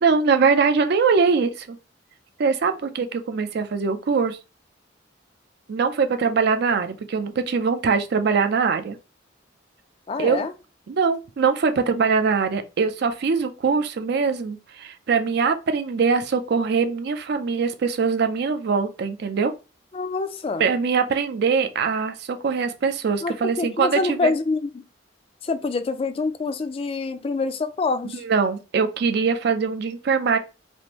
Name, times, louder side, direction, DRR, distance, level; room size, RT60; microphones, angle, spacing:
voice 1, 0.0-1.8 2.4-4.4 5.7-9.0 10.2-10.4 10.9-19.5 20.6-24.3 28.1-30.4, right 5 dB, 60° right, 0.4 m, -22 dB
voice 2, 10.1-10.5 19.9-20.6 23.2-24.8 25.4-28.2, left 3 dB, 30° left, 0.3 m, -26 dB
3.4 x 2.5 x 2.9 m
head